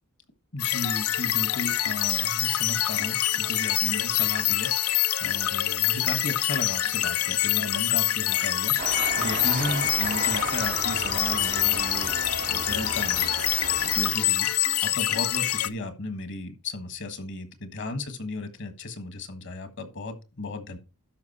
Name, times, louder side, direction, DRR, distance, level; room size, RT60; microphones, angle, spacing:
voice 1, 0.5-12.1 12.5-20.8, left 2 dB, 55° left, 1.5 m, -35 dB
sound 1, 0.6-15.7, left 13 dB, 75° left, 0.5 m, -25 dB
sound 2, 8.8-14.1, right 6 dB, 40° right, 0.5 m, -34 dB
12.0 x 5.3 x 4.2 m
head